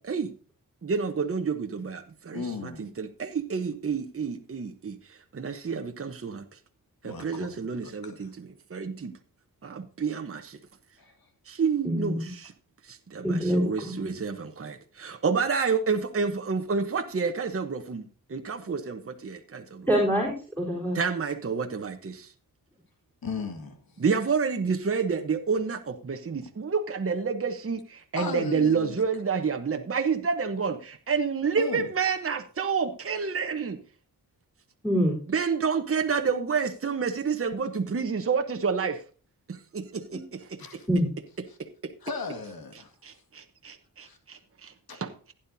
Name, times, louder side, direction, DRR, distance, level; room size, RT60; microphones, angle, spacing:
voice 1, 0.8-6.4 7.0-9.1 9.6-10.6 11.5-12.5 12.9-19.9 20.9-22.3 24.0-33.8 35.3-39.0 39.5-40.6 41.6-41.9 43.0-45.3, right 5 dB, 40° right, 6 dB, 1.0 m, -29 dB
voice 2, 2.3-2.9 7.0-7.5 8.0-8.2 11.0-11.1 23.2-23.8 28.2-28.9 31.6-31.9 40.6-40.9 42.0-42.9 44.0-44.2 44.9-45.0, left 4 dB, 80° left, 5 dB, 2.0 m, -35 dB
voice 3, 11.8-12.3 13.2-14.0 19.9-21.0 34.8-35.2 40.1-40.2 40.9-41.1, equal, 5° left, -4 dB, 3.9 m, -25 dB
15.5 x 10.0 x 2.7 m, 0.38 s
wide cardioid pair, 95°, 36 cm